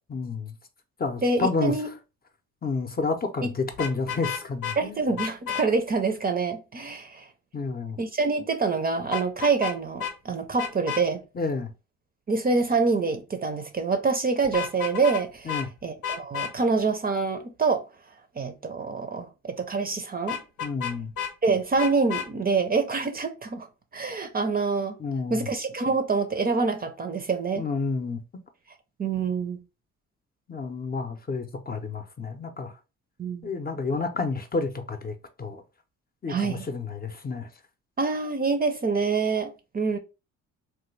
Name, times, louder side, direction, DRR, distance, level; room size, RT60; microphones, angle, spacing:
voice 1, 0.1-0.5 1.0-1.7 2.6-5.0 7.5-8.0 11.3-11.7 15.4-15.7 20.6-21.1 25.0-25.5 27.6-28.2 30.5-32.7 33.4-35.6 36.2-37.5, left 4 dB, 30° left, 0.6 m, -30 dB
voice 2, 1.2-1.9 3.4-3.5 4.8-7.3 8.0-11.2 12.3-15.5 15.8-17.8 18.4-20.4 21.4-23.7 23.9-25.0 25.3-27.6 29.0-29.6 33.2-33.5 36.3-36.7 38.0-40.0, right 4 dB, 30° right, 0.5 m, -26 dB
Vehicle horn car horn honking, 3.7-4.8 5.2-5.7 9.1-9.7 10.0-10.1 10.6-11.0 14.4-15.2 15.5-15.7 16.0-16.5 20.3-21.3 21.8-22.3, left 8 dB, 90° left, 0.8 m, -31 dB
3.2 x 2.2 x 3.1 m
cardioid pair, 90°, 30 cm